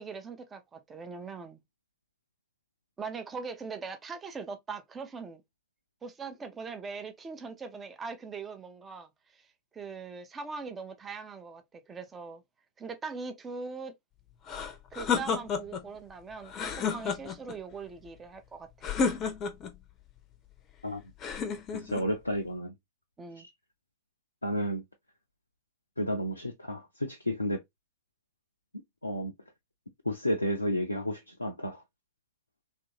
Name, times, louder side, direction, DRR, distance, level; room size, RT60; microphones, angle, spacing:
voice 1, 0.0-1.6 3.0-5.4 6.0-9.5 9.7-12.4 12.8-13.9 14.9-18.9 23.2-23.5, right 5 dB, 20° right, 0.6 m, -41 dB
sound 1, 14.5-15.9 16.5-17.6 18.8-19.8 21.2-22.1, left 5 dB, 30° left, 0.6 m, -31 dB
voice 2, 21.7-22.7 23.4-23.5 24.4-24.8 26.0-27.6 29.0-29.3 30.1-31.8, equal, 85° left, 0.5 m, -31 dB
3.0 x 2.6 x 2.8 m
figure-of-eight pair, 90°, 0 cm